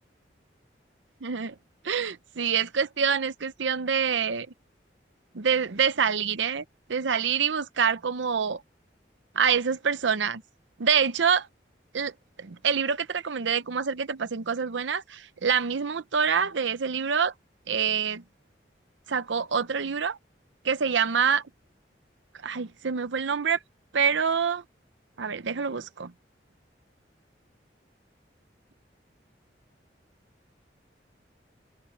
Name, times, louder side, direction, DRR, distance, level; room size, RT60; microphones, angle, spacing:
voice 1, 1.2-1.5 1.8-4.5 5.3-6.6 6.9-8.6 9.4-10.4 10.8-11.5 11.9-12.1 12.4-17.3 17.7-18.2 19.1-20.2 20.6-21.4 22.4-23.6 23.9-24.6 25.2-26.1, right 6 dB, 85° right, 0.7 m, -26 dB
head